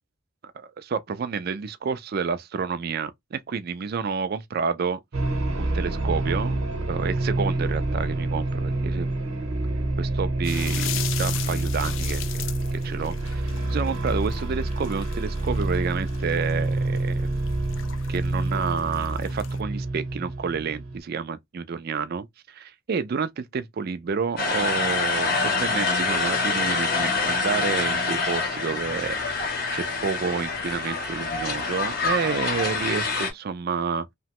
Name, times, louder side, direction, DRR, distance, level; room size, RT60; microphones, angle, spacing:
voice 1, 0.5-5.0 5.6-9.1 10.0-12.2 12.8-17.3 18.1-34.1, right 5 dB, 45° right, 0.3 m, -29 dB
sound 1, 5.1-21.0, right 2 dB, 75° right, 0.9 m, -27 dB
sound 2, 10.4-19.6, left 12 dB, 60° left, 0.3 m, -38 dB
sound 3, 24.4-33.3, left 4 dB, 45° left, 0.7 m, -26 dB
2.9 x 2.1 x 2.8 m
head